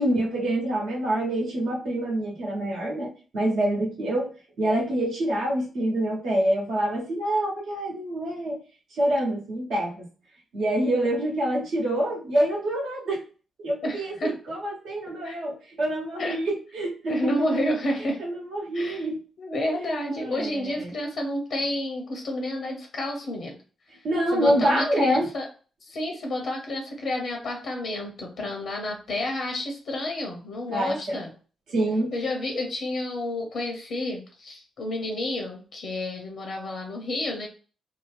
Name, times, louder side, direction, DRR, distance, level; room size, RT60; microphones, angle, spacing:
voice 1, 0.0-4.3 4.6-8.6 8.9-10.1 10.5-13.2 13.6-17.6 18.2-19.2 19.8-20.9 24.0-25.3 30.7-31.2 31.7-32.1, right 1 dB, 75° right, -2 dB, 1.0 m, -26 dB
voice 2, 13.8-14.3 15.2-15.4 16.2-16.4 17.1-18.2 18.7-19.1 19.4-23.6 24.3-25.5 25.8-31.3 32.1-37.5, left 1 dB, 70° left, 2 dB, 0.6 m, -30 dB
2.7 x 2.0 x 3.2 m, 0.38 s
supercardioid pair, 45°, 0 cm